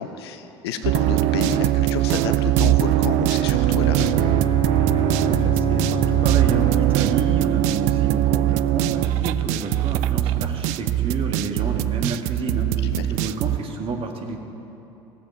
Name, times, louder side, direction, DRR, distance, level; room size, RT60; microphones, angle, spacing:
voice 1, 0.0-4.4 12.8-13.1, left 7 dB, 70° left, 9 dB, 0.7 m, -30 dB
sound 1, 0.8-13.6, right 14 dB, 55° right, 0.4 m, -21 dB
Bowed string instrument, 3.4-8.2, left 4 dB, 35° left, 1.0 m, -31 dB
voice 2, 5.1-14.4, right 4 dB, 40° right, 2 dB, 1.6 m, -30 dB
16.5 x 7.6 x 5.4 m, 2.9 s
figure-of-eight pair, 65°, 14 cm